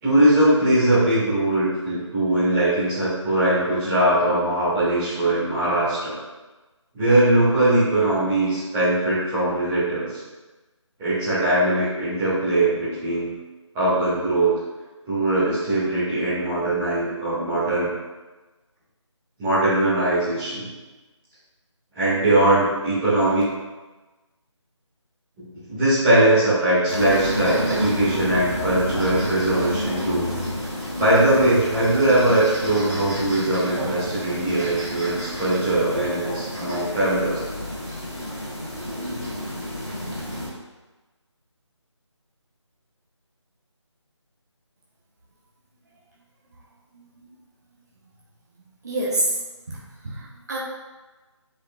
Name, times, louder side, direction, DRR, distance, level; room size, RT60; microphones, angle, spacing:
voice 1, 0.0-6.2 6.9-10.1 11.0-13.3 13.7-14.5 15.1-17.9 19.4-20.7 21.9-23.4 25.4-30.3 31.0-37.4, right 1 dB, 10° right, -14 dB, 1.8 m, -21 dB
sound 1, 26.9-40.5, equal, 10° left, 1.7 m, -30 dB
voice 2, 48.8-49.8 50.0-50.6, right 1 dB, 35° right, -5 dB, 0.9 m, -27 dB
8.1 x 5.1 x 2.3 m, 1.2 s
figure-of-eight pair, 160°, 16 cm